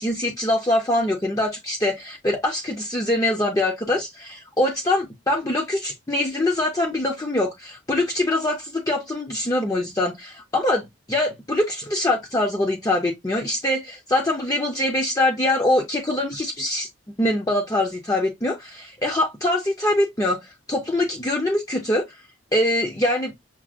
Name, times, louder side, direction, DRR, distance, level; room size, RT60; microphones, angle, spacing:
voice 1, 0.0-16.9 17.2-22.0 22.5-23.3, left 1 dB, 15° left, 0.5 m, -23 dB
5.9 x 2.0 x 2.4 m
head